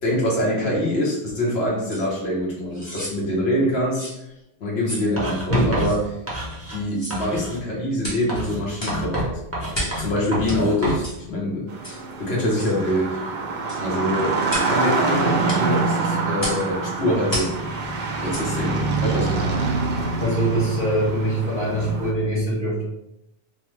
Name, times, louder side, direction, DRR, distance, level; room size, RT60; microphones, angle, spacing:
voice 1, 0.0-4.1 4.6-6.2 6.7-9.3 10.0-11.7 12.2-13.3 13.8-14.4 14.7-17.5 18.2-19.6, left 1 dB, 80° left, -4 dB, 1.2 m, -24 dB
sound 1, 1.9-2.1 2.7-3.2 3.9-4.2 4.8-5.1 5.8-6.0 6.9-7.2 8.0-8.3 8.8-9.0 9.7-10.0 10.5-10.6 11.0-11.2 11.8-12.0 12.6-12.8 13.7-13.9 14.5-14.7 15.5-15.6 16.4-16.7 17.3-17.6 18.3-18.5 19.0-19.1, equal, 25° left, 0.8 m, -31 dB
Writing, 5.2-6.8 7.1-7.6 8.3-11.1, right 1 dB, 15° right, 0.6 m, -29 dB
sound 2, 11.7-22.1, right 3 dB, 65° right, 0.7 m, -25 dB
voice 2, 20.2-22.8, right 1 dB, 45° left, -11 dB, 1.5 m, -23 dB
3.1 x 2.0 x 3.1 m, 0.85 s
omnidirectional pair, 1.1 m